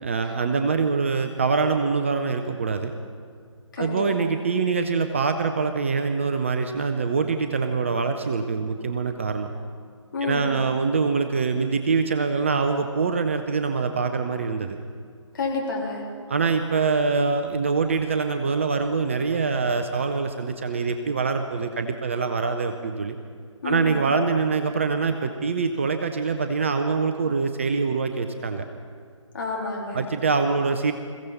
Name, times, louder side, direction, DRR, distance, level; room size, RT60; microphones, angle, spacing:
voice 1, 0.0-2.9 3.8-9.5 10.2-14.8 16.3-23.2 23.6-28.6 29.9-30.9, right 4 dB, 25° right, 7 dB, 0.5 m, -24 dB
voice 2, 3.7-4.3 10.1-10.6 15.3-16.0 23.6-23.9 29.3-30.0, left 3 dB, 40° left, -2 dB, 3.2 m, -29 dB
21.5 x 15.5 x 4.1 m, 2.1 s
figure-of-eight pair, 145°, 16 cm